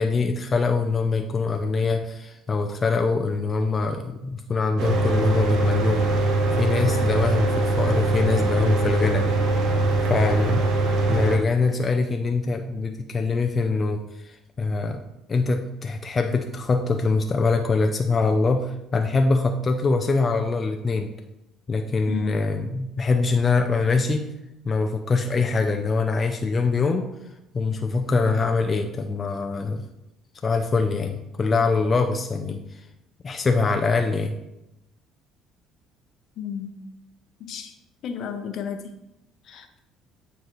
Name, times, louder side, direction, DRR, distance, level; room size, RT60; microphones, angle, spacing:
voice 1, 0.0-9.3 10.1-10.7 11.0-15.0 15.3-21.1 21.7-24.3 24.6-27.1 27.5-29.8 30.4-32.9 33.2-34.3, left 4 dB, 30° left, 4 dB, 0.5 m, -24 dB
Mechanical fan, 4.8-11.4, right 2 dB, 70° right, 1.0 m, -22 dB
voice 2, 36.4-36.7 37.4-37.7 38.0-38.9 39.5-39.8, left 7 dB, 60° left, 7 dB, 0.8 m, -33 dB
8.7 x 4.0 x 3.1 m, 0.89 s
supercardioid pair, 95°, 0 cm